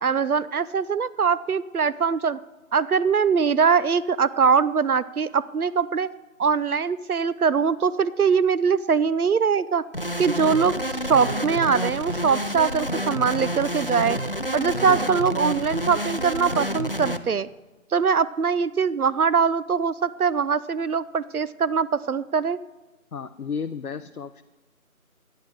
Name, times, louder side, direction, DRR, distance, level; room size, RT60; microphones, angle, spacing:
voice 1, 0.0-2.4 2.7-6.1 6.4-9.8 10.2-10.8 11.0-14.2 14.5-17.5 17.9-22.6, right 6 dB, 80° right, 17 dB, 0.6 m, -22 dB
sound 1, 9.9-17.2, equal, 40° left, 0.6 m, -29 dB
voice 2, 14.7-15.3 23.1-24.4, left 6 dB, 85° left, 11 dB, 0.7 m, -34 dB
13.0 x 9.4 x 6.8 m, 1.1 s
figure-of-eight pair, 170°, 43 cm